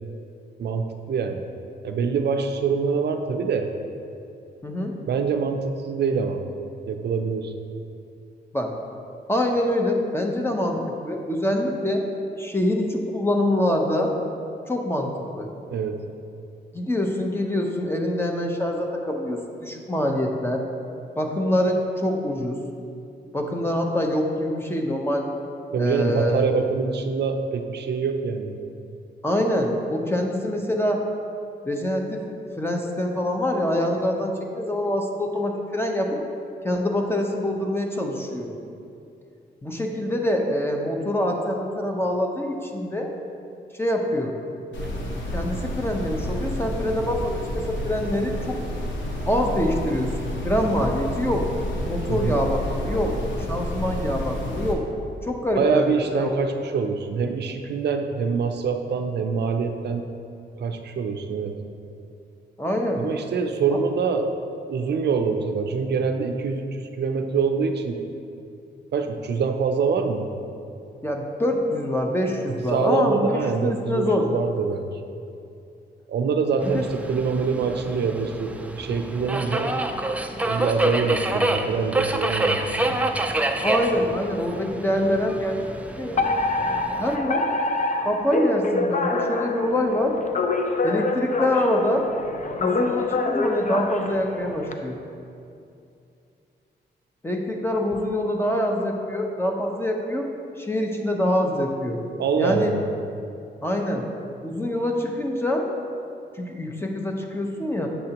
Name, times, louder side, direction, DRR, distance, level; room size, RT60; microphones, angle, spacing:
voice 1, 0.6-1.4 1.8-3.7 5.1-6.4 6.9-7.5 15.7-16.0 25.7-28.6 52.1-52.4 55.5-60.1 60.6-61.6 63.0-64.3 64.7-68.0 68.9-70.3 72.5-74.9 76.1-79.7 80.4-82.8 102.2-102.8, right 5 dB, 65° right, 5 dB, 0.5 m, -25 dB
voice 2, 4.6-5.0 8.5-8.7 9.3-10.8 11.1-12.1 12.4-14.1 14.7-15.1 15.4-15.5 16.7-20.6 21.2-22.6 23.3-25.3 25.8-26.5 29.2-31.0 31.6-32.2 32.6-36.2 36.6-38.5 39.6-43.1 43.8-44.3 45.3-48.6 49.3-51.4 51.8-53.2 53.5-54.8 55.2-56.4 62.6-63.0 71.0-74.3 76.6-76.8 83.6-85.6 86.0-86.2 87.0-87.4 88.0-90.1 90.8-92.0 92.6-95.0 97.2-100.3 100.6-102.0 102.4-102.8 103.6-104.0 104.4-105.7 106.4-107.9, left 1 dB, 10° left, 1 dB, 0.8 m, -25 dB
sound 1, 44.7-54.7, equal, 85° left, 1.0 m, -30 dB
Subway metro underground, 76.6-87.2, right 1 dB, 5° right, 0.4 m, -27 dB
Alarm, 86.2-94.7, left 3 dB, 40° left, 0.5 m, -26 dB
7.6 x 6.8 x 2.9 m, 2.6 s
cardioid pair, 85°, 19 cm